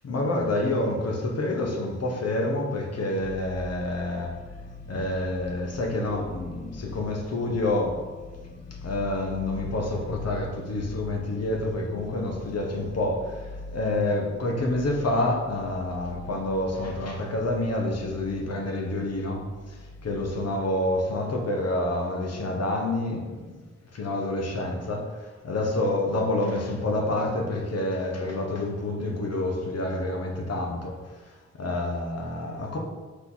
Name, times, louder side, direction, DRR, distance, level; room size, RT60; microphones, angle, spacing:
voice 1, 0.0-4.4 4.9-8.0 8.8-23.6 23.9-32.8, left 1 dB, 60° left, 1 dB, 1.4 m, -28 dB
sound 1, 3.2-21.1, left 3 dB, 30° left, 0.6 m, -43 dB
5.9 x 5.4 x 4.2 m, 1.3 s
cardioid pair, 100°, 29 cm